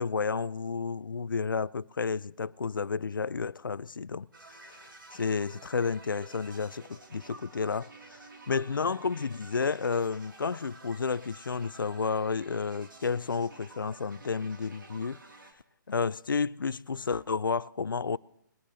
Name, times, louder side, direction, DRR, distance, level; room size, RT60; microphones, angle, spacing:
voice 1, 0.0-4.3 4.6-8.2 8.5-15.2 15.9-18.2, left 5 dB, 90° left, 0.4 m, -31 dB
sound 1, 4.3-15.5, right 3 dB, 80° right, 2.4 m, -51 dB
21.0 x 8.6 x 3.9 m
figure-of-eight pair, 140°, 11 cm